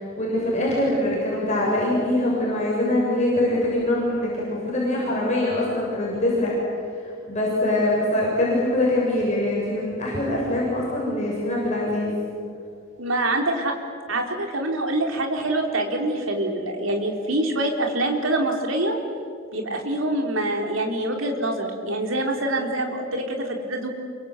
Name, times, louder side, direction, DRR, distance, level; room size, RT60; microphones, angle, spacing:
voice 1, 0.0-6.5 7.3-12.2, left 1 dB, 35° left, -5 dB, 7.2 m, -23 dB
voice 2, 13.0-13.7 14.1-19.0 19.5-23.9, right 1 dB, 85° right, 2 dB, 3.9 m, -25 dB
28.5 x 24.5 x 8.2 m, 2.3 s
head